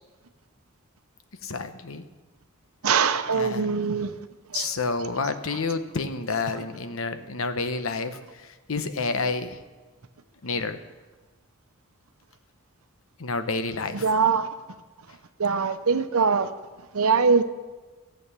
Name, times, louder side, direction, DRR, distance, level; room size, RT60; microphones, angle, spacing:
voice 1, 1.4-2.0 3.3-3.9 4.5-9.6 10.4-10.8 13.2-14.1, left 3 dB, 70° left, 9 dB, 0.9 m, -29 dB
voice 2, 2.8-4.1 4.5-4.7 13.9-14.5 15.4-16.5 16.9-17.4, right 5 dB, 85° right, 10 dB, 0.8 m, -22 dB
14.0 x 7.8 x 6.8 m, 1.3 s
head